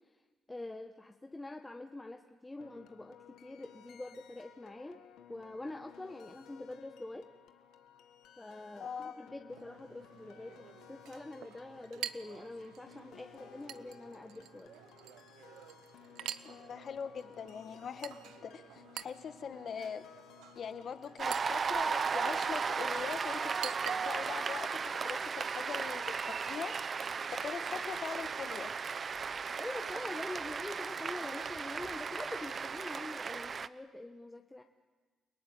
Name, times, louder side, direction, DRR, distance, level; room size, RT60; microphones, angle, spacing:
voice 1, 0.5-5.0 5.3-7.3 8.4-14.7 29.6-34.6, left 2 dB, 15° left, 4 dB, 1.3 m, -45 dB
sound 1, 2.6-21.5, left 10 dB, 85° left, 1.4 m, -58 dB
voice 2, 8.8-9.1 16.4-20.1 20.6-26.8 27.3-28.7, left 7 dB, 55° left, 10 dB, 1.6 m, -42 dB
Chink clink, 9.5-24.5, right 11 dB, 85° right, 0.8 m, -49 dB
Cheering / Applause, 21.2-33.7, right 5 dB, 40° right, 0.8 m, -36 dB
29.0 x 18.5 x 9.4 m, 1.3 s
cardioid pair, 90°, 0 cm